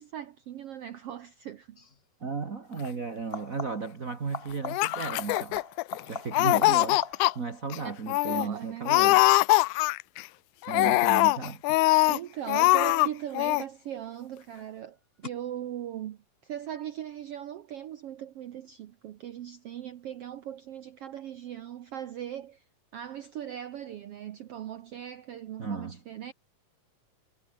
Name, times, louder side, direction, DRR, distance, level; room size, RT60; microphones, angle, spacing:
voice 1, 0.0-1.8 7.8-7.9 8.3-9.0 10.7-11.1 12.1-22.6 22.9-26.3, right 10 dB, 85° right, 1.3 m, -39 dB
sound 1, 1.7-2.0 3.2-4.0 4.3-7.7 13.1-13.7 15.2-15.3, left 4 dB, 65° left, 0.5 m, -41 dB
voice 2, 2.2-5.6 6.0-9.2 10.7-11.6 25.6-26.0, right 5 dB, 40° right, 1.3 m, -35 dB
Laughter, 4.7-6.0 6.3-7.3 7.7-7.8 8.1-8.5 8.9-10.2 10.7-12.2 12.5-13.1 13.3-13.6, left 21 dB, 85° left, 1.7 m, -22 dB
omnidirectional pair, 4.1 m